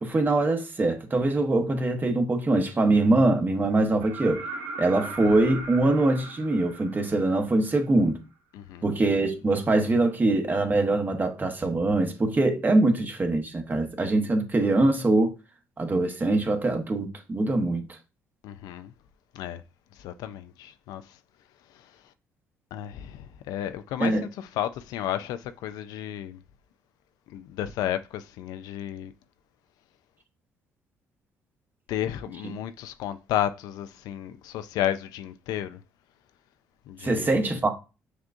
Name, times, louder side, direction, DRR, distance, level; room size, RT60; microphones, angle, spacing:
voice 1, 0.0-4.4 4.8-8.2 8.8-15.3 15.8-17.8 24.0-24.2 37.0-37.7, right 2 dB, 30° right, 1.0 m, -23 dB
sound 1, 4.0-7.8 9.7-9.8, right 3 dB, 80° right, 0.7 m, -38 dB
voice 2, 8.5-8.9 18.4-18.9 19.3-19.6 20.0-21.0 22.7-26.4 27.3-29.1 31.9-35.8 36.9-37.6, left 11 dB, 75° left, 0.4 m, -32 dB
6.3 x 2.3 x 2.5 m
supercardioid pair, 65°, 7 cm